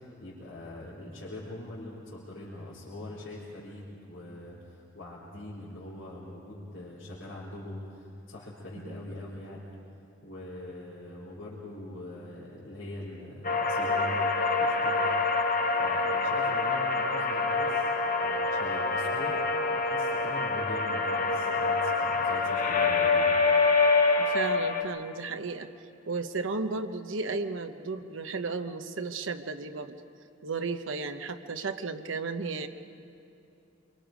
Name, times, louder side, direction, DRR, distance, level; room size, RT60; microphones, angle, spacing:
voice 1, 0.0-9.7 10.2-14.2 14.6-15.1 15.7-23.3, left 1 dB, 75° left, -8 dB, 3.5 m, -42 dB
sound 1, 13.4-24.8, left 3 dB, 45° left, 1.2 m, -26 dB
voice 2, 24.2-25.7 26.1-30.0 30.4-32.7, right 4 dB, 80° right, 7 dB, 0.9 m, -34 dB
26.5 x 23.0 x 5.2 m, 2.7 s
head